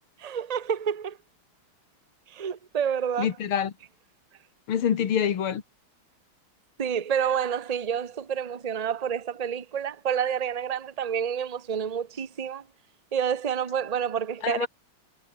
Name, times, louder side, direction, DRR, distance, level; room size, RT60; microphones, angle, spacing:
voice 1, 0.2-1.2 2.3-3.3 6.8-12.6 13.1-14.7, right 8 dB, 50° right, 0.4 m, -28 dB
voice 2, 3.2-3.7 4.7-5.6 14.4-14.7, left 8 dB, 75° left, 2.6 m, -26 dB
omnidirectional pair, 2.4 m